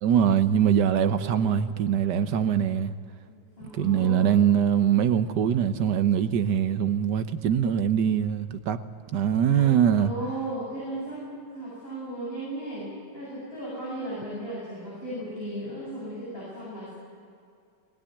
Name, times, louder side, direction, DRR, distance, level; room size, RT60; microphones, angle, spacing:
voice 1, 0.0-2.9 3.7-8.8 9.1-10.1, right 8 dB, 65° right, 1.5 m, -23 dB
voice 2, 0.9-1.4 3.3-4.5 9.5-9.7 9.9-16.9, right 1 dB, 30° left, 8.2 m, -36 dB
20.0 x 20.0 x 9.9 m
omnidirectional pair, 2.0 m